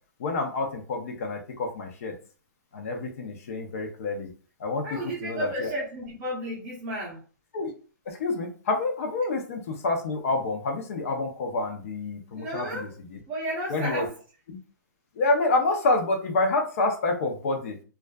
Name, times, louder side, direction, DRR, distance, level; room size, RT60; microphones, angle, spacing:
voice 1, 0.2-2.1 2.7-4.3 4.6-5.7 7.5-7.7 8.1-13.2 13.7-14.1 14.5-14.6 15.1-17.8, left 2 dB, 45° left, 3 dB, 0.6 m, -28 dB
voice 2, 4.8-7.2 12.3-12.9 13.3-14.1, right 1 dB, 20° right, -5 dB, 0.7 m, -32 dB
2.4 x 2.3 x 2.2 m, 0.39 s
hypercardioid pair, 165°, 11 cm